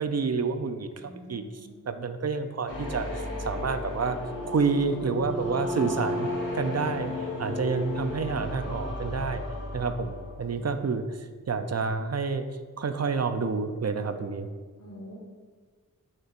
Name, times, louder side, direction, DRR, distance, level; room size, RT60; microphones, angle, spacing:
voice 1, 0.0-4.2 4.5-6.3 6.5-9.4 9.7-12.5 12.8-14.5, right 4 dB, 50° right, 8 dB, 0.5 m, -29 dB
voice 2, 0.9-1.8 10.5-10.8 14.8-15.1, equal, 50° left, -7 dB, 1.5 m, -47 dB
sound 1, 2.7-10.6, left 2 dB, 65° left, 1.5 m, -34 dB
9.5 x 4.5 x 2.5 m, 1.5 s
wide cardioid pair, 45°, 33 cm